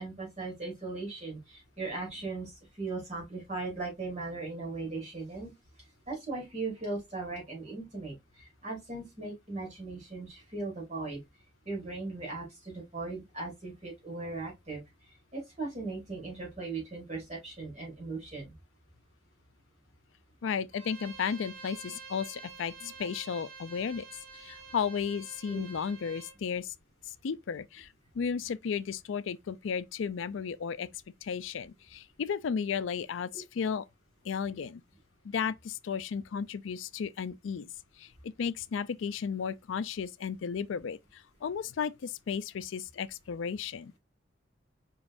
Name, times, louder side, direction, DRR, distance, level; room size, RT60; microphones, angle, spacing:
voice 1, 0.0-5.5 6.1-11.2 11.7-14.8 15.3-18.5 25.5-25.6 30.8-30.9 33.3-33.4, right 3 dB, 35° right, 2.8 m, -38 dB
voice 2, 20.4-24.1 24.3-26.7 27.2-30.9 31.2-33.9 34.2-34.8 35.2-37.7 38.0-43.9, left 6 dB, 80° left, 0.4 m, -34 dB
Bowed string instrument, 20.7-26.4, right 5 dB, 85° right, 1.5 m, -48 dB
4.9 x 3.7 x 2.5 m
head